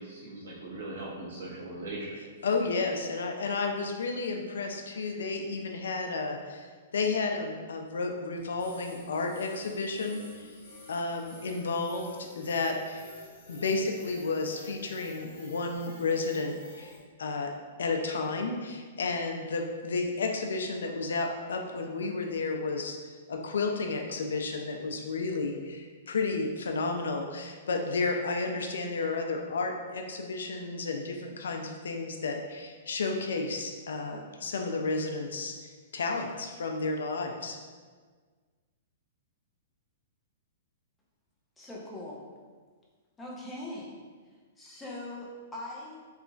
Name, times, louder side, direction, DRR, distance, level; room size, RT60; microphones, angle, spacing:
voice 1, 0.0-2.2, right 2 dB, 75° right, -7 dB, 0.7 m, -39 dB
voice 2, 2.4-10.6 10.9-13.1 13.5-16.9 17.2-17.5 17.8-23.0 23.3-37.6, left 3 dB, 90° left, 3 dB, 0.3 m, -32 dB
sound 1, 8.6-17.0, left 1 dB, 60° left, 1.3 m, -50 dB
voice 3, 41.6-42.3 43.2-44.0 44.6-46.0, left 1 dB, 10° left, -4 dB, 0.5 m, -41 dB
2.9 x 2.4 x 2.3 m, 1.5 s
hypercardioid pair, 155°, 0 cm